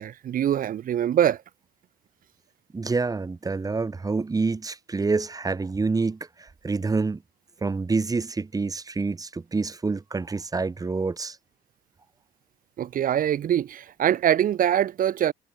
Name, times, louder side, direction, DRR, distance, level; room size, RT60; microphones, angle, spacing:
voice 1, 0.0-1.4 12.8-15.3, right 10 dB, 55° right, 3.0 m, -23 dB
voice 2, 2.7-7.2 7.6-11.4, right 4 dB, 20° right, 4.2 m, -27 dB
cardioid pair, 110°, 17 cm